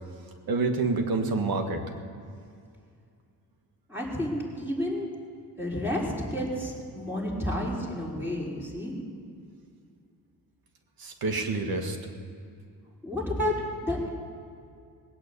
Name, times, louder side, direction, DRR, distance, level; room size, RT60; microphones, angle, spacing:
voice 1, 0.5-1.8 11.0-12.0, right 3 dB, 65° right, 5 dB, 2.1 m, -27 dB
voice 2, 3.9-5.1 5.6-8.9 13.0-14.1, left 1 dB, 5° right, -4 dB, 5.1 m, -30 dB
19.0 x 8.6 x 8.5 m, 2.3 s
supercardioid pair, 65°, 39 cm